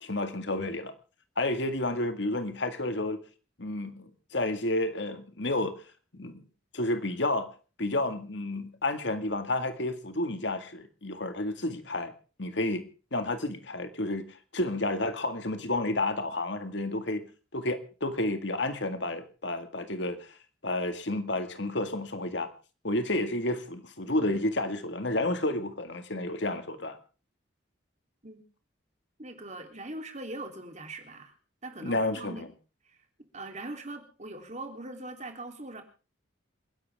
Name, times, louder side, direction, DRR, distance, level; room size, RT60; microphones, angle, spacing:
voice 1, 0.0-0.9 1.4-3.2 3.6-5.7 6.1-6.4 6.7-7.5 7.8-12.1 12.4-12.8 13.1-14.3 14.5-17.3 17.5-20.4 20.6-22.5 22.8-27.0 31.8-32.5, left 2 dB, 60° left, 2.0 m, -30 dB
voice 2, 29.2-31.3 31.6-32.5 32.9-33.0 33.3-35.8, right 2 dB, 35° right, 3.3 m, -41 dB
27.5 x 11.0 x 3.6 m
head